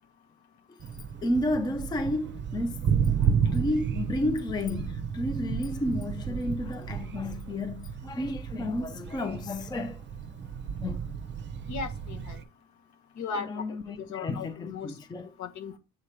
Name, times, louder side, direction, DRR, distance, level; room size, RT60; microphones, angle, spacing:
Thunder, 0.8-12.4, right 7 dB, 35° right, 0.7 m, -32 dB
voice 1, 1.2-2.9 3.2-10.0 10.8-11.0 13.4-15.3, left 1 dB, 15° left, 0.5 m, -32 dB
voice 2, 11.7-12.4 13.2-13.5 14.1-14.9 15.4-15.8, left 5 dB, 60° left, 1.1 m, -36 dB
7.5 x 3.0 x 4.8 m
cardioid pair, 140°, 33 cm